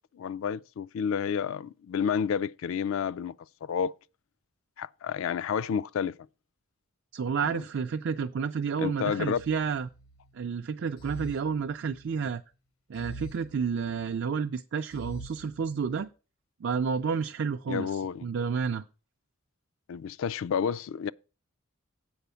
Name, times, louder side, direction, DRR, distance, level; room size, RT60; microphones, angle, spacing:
voice 1, 0.1-3.3 3.6-3.9 4.8-6.1 7.4-7.6 8.8-9.4 17.7-18.3 19.9-21.1, left 7 dB, 70° left, 0.3 m, -30 dB
voice 2, 7.1-9.9 10.3-12.4 12.9-16.1 16.6-18.8, right 6 dB, 55° right, 0.4 m, -30 dB
sound 1, 9.4-10.3 11.0-12.3 12.9-14.2 14.9-16.1, right 1 dB, 90° left, 1.2 m, -45 dB
7.9 x 4.9 x 6.8 m
head